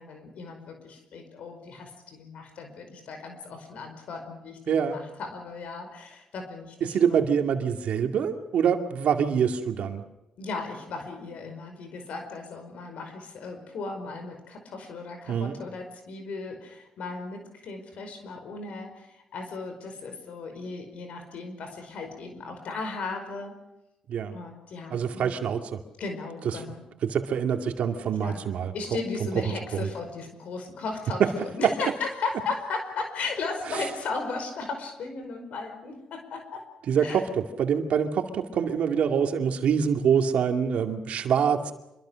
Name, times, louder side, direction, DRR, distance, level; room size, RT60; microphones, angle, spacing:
voice 1, 0.0-7.2 10.4-23.5 24.3-25.3 26.0-26.8 28.2-28.4 28.7-36.6 37.0-37.2, left 4 dB, 75° left, 5 dB, 5.1 m, -36 dB
voice 2, 4.7-5.0 6.8-10.0 15.3-15.6 24.1-24.4 24.9-25.8 27.0-28.7 29.7-29.8 31.6-31.7 36.9-41.7, right 7 dB, 75° right, 4 dB, 2.4 m, -25 dB
26.0 x 23.0 x 6.5 m, 0.92 s
cardioid pair, 75°, 2 cm